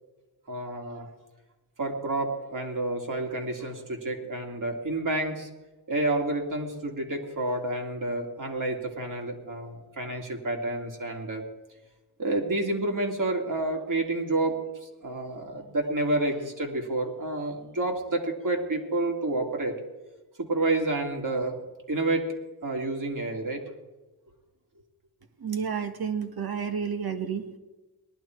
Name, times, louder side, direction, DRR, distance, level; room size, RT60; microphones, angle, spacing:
voice 1, 0.5-1.1 1.8-5.5 5.9-11.4 12.2-14.6 15.0-19.7 20.4-21.6 21.9-22.3 22.6-23.6, right 2 dB, 50° right, 2 dB, 2.7 m, -29 dB
voice 2, 25.4-27.6, right 7 dB, 70° right, 6 dB, 1.7 m, -31 dB
19.0 x 11.5 x 4.6 m, 1.1 s
wide cardioid pair, 85°, 39 cm